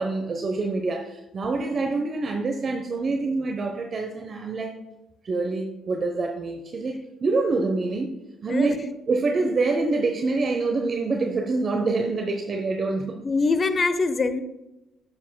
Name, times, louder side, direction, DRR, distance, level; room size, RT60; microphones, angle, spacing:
voice 1, 0.0-4.7 5.2-8.2 8.4-13.2, right 3 dB, 45° right, 4 dB, 1.1 m, -26 dB
voice 2, 13.2-14.4, left 4 dB, 40° left, 10 dB, 1.1 m, -23 dB
15.5 x 7.3 x 2.3 m, 0.95 s
hypercardioid pair, 55°, 0 cm